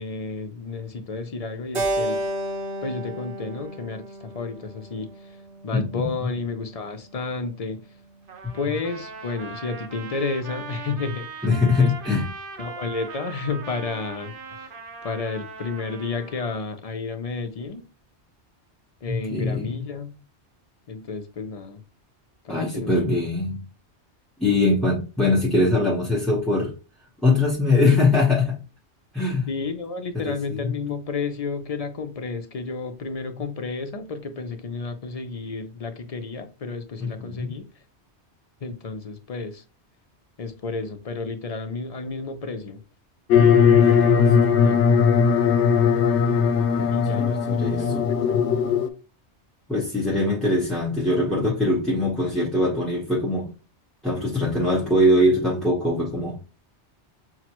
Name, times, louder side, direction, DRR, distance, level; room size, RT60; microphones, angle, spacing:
voice 1, 0.0-2.2 2.8-5.4 5.6-7.8 8.5-11.5 11.8-11.9 12.6-14.8 15.0-17.8 19.0-20.1 20.9-21.8 22.4-22.9 29.5-37.6 38.6-39.6 40.4-42.8 44.6-44.8 46.9-47.3 47.7-48.4, left 4 dB, 50° left, 0.5 m, -31 dB
Keyboard (musical), 1.7-6.1, right 1 dB, 75° right, 1.2 m, -31 dB
voice 2, 5.7-6.1 11.4-12.2 19.1-19.7 22.5-23.6 24.4-26.8 27.2-28.6 29.1-29.5 30.1-30.6 37.0-37.5 43.8-44.3 46.8-48.1 49.7-53.5 54.0-56.4, left 2 dB, ahead, 0.8 m, -22 dB
Trumpet, 8.3-16.6, right 5 dB, 55° right, 0.8 m, -39 dB
sound 1, 43.3-48.9, left 6 dB, 80° left, 0.9 m, -18 dB
5.8 x 2.1 x 2.9 m
omnidirectional pair, 1.2 m